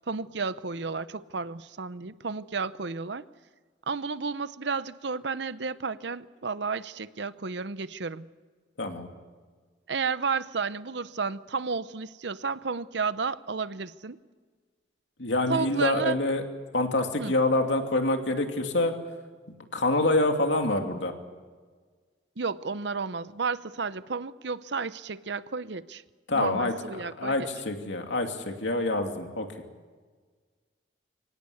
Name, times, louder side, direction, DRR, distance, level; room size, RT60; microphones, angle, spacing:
voice 1, 0.1-3.3 3.9-8.3 9.9-14.2 15.5-16.2 17.2-17.3 22.4-26.0 26.3-27.5, right 4 dB, 65° right, 15 dB, 0.8 m, -32 dB
voice 2, 15.2-16.4 16.7-18.9 19.7-21.1 26.3-26.7 27.2-29.5, left 2 dB, 70° left, 4 dB, 2.7 m, -26 dB
24.5 x 18.0 x 8.6 m, 1.5 s
head